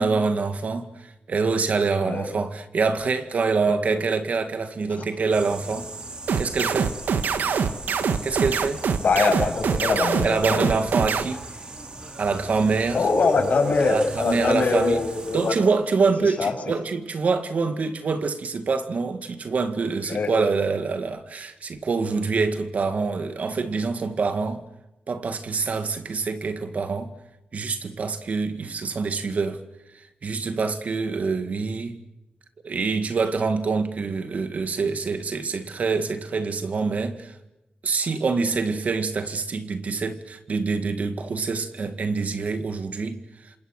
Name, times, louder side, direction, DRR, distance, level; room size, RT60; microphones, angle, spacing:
voice 1, 0.0-5.9 6.4-6.9 8.2-8.8 10.2-11.4 12.2-13.0 13.9-15.0 15.3-24.6 25.1-27.1 27.5-29.6 29.9-32.0 32.6-37.4 37.8-43.5, right 4 dB, 50° right, 2.1 m, -25 dB
sound 1, 5.3-15.6, right 2 dB, 30° right, 4.2 m, -39 dB
sound 2, 6.3-11.2, right 6 dB, 85° right, 1.7 m, -23 dB
voice 2, 9.0-10.7 12.3-12.4 12.9-15.5 16.2-16.5 20.1-20.3, left 4 dB, 55° left, 7.8 m, -23 dB
28.0 x 27.5 x 6.7 m
wide cardioid pair, 160°, 3 cm